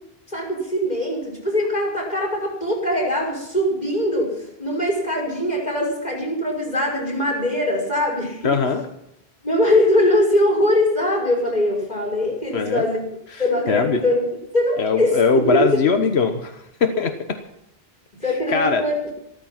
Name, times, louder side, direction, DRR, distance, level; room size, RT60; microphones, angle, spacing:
voice 1, 0.3-8.5 9.4-13.0 13.4-14.3 14.5-15.7 18.2-19.1, left 1 dB, 40° left, -1 dB, 5.7 m, -22 dB
voice 2, 8.4-8.9 12.5-12.9 13.3-14.0 14.8-17.1 18.5-18.8, left 5 dB, 90° left, 6 dB, 1.5 m, -21 dB
14.5 x 14.0 x 5.9 m, 0.80 s
omnidirectional pair, 1.1 m